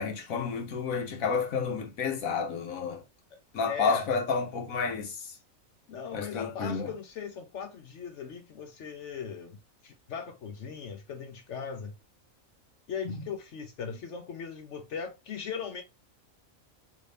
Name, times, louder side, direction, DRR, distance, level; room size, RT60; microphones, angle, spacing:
voice 1, 0.0-3.0 3.5-5.3 6.1-6.9 13.0-13.1, left 5 dB, 90° left, 1.4 m, -30 dB
voice 2, 3.7-4.1 5.9-11.9 12.9-15.8, left 6 dB, 65° left, 0.9 m, -39 dB
3.3 x 3.1 x 4.0 m
omnidirectional pair, 1.4 m